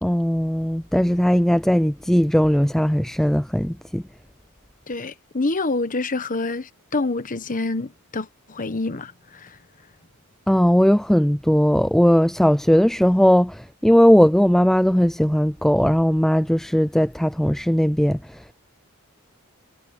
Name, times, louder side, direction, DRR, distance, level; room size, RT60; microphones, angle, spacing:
voice 1, 0.0-4.0 10.5-18.2, equal, ahead, 0.4 m, -18 dB
voice 2, 4.9-9.6, left 3 dB, 35° left, 1.2 m, -27 dB
head